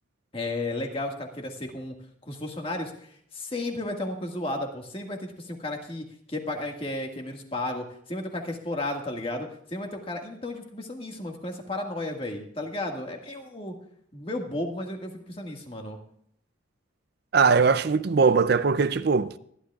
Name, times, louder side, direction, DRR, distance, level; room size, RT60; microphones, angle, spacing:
voice 1, 0.3-2.0 2.2-13.7 14.1-16.0, left 2 dB, 30° left, 1.8 m, -33 dB
voice 2, 17.3-19.4, right 5 dB, 55° right, 0.4 m, -21 dB
23.0 x 11.5 x 2.4 m
head